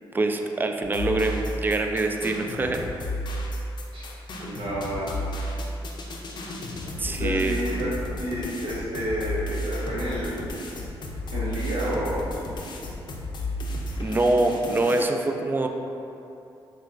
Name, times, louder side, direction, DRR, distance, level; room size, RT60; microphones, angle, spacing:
voice 1, 0.1-2.9 7.0-7.6 14.0-15.7, right 2 dB, 20° right, 4 dB, 0.3 m, -24 dB
sound 1, 0.8-15.0, left 1 dB, 55° left, 0.5 m, -33 dB
voice 2, 4.4-5.5 7.2-7.9 8.2-10.8 11.3-12.3, right 1 dB, 65° right, -9 dB, 0.8 m, -30 dB
5.8 x 2.3 x 2.5 m, 2.8 s
cardioid pair, 70°, 9 cm